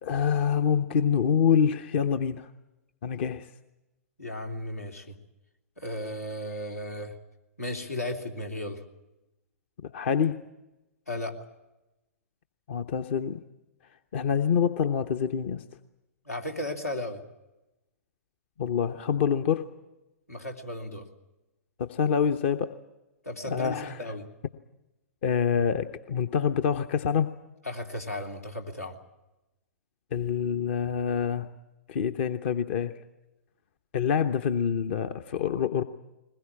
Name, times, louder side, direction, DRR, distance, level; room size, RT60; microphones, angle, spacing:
voice 1, 0.0-2.5 3.0-3.5 9.9-10.4 12.7-13.4 14.1-15.6 18.6-19.7 21.8-22.7 23.5-24.1 25.2-27.3 30.1-31.5 31.9-33.0 33.9-35.8, left 7 dB, 50° left, 9 dB, 0.9 m, -26 dB
voice 2, 4.2-5.2 5.8-7.1 7.6-8.8 11.1-11.4 16.2-17.2 20.3-21.0 23.2-24.2 27.6-29.0, left 1 dB, 85° left, 2 dB, 3.2 m, -35 dB
21.5 x 20.5 x 8.7 m, 0.99 s
figure-of-eight pair, 110°, 8 cm